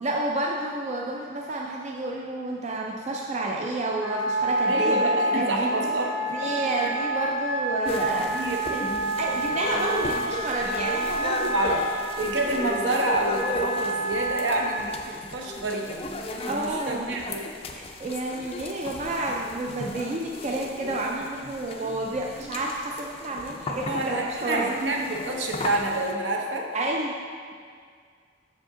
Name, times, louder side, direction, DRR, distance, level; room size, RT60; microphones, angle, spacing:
voice 1, 0.0-5.7 6.3-8.3 8.7-8.8 9.2-11.7 16.5-17.1 17.7-24.7 26.7-27.1, right 2 dB, 35° right, -1 dB, 0.4 m, -30 dB
Wind instrument woodwind instrument, 4.0-14.8, right 1 dB, 15° right, 0.8 m, -28 dB
voice 2, 4.7-6.5 6.8-6.9 8.2-8.6 11.5-11.8 12.2-15.9 16.5-17.5 23.9-26.7, right 1 dB, 70° right, 1 dB, 0.8 m, -28 dB
sound 1, 7.8-26.1, left 1 dB, 30° left, 0.4 m, -36 dB
6.5 x 5.0 x 3.7 m, 2.1 s
head